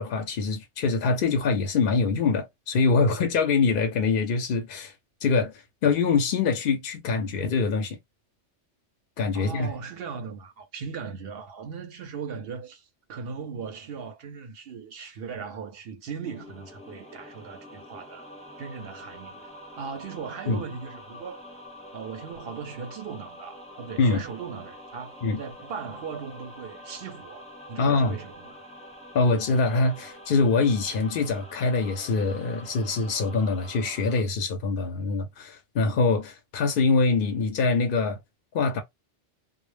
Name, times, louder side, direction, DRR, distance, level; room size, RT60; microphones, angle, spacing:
voice 1, 0.0-4.9 5.2-8.0 9.2-9.7 20.5-20.6 24.0-24.2 25.2-25.4 27.8-28.2 29.1-38.2 38.5-38.8, left 4 dB, 60° left, 0.6 m, -24 dB
voice 2, 9.3-18.3 18.6-19.4 19.7-21.4 21.9-28.6, right 6 dB, 60° right, 0.7 m, -38 dB
sound 1, 16.2-34.2, equal, 10° left, 0.5 m, -46 dB
2.1 x 2.0 x 3.1 m
omnidirectional pair, 1.2 m